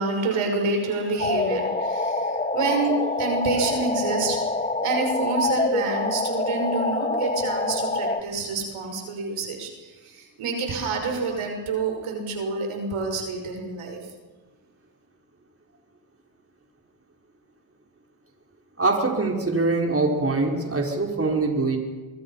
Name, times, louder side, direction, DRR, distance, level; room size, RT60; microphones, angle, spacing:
voice 1, 0.0-14.1, right 3 dB, 75° right, 3 dB, 5.9 m, -28 dB
sound 1, 1.2-8.2, left 2 dB, 15° left, 1.7 m, -26 dB
voice 2, 18.8-21.8, right 3 dB, 25° right, 1 dB, 5.1 m, -23 dB
25.0 x 23.5 x 5.8 m, 1.3 s
cardioid pair, 70°, 50 cm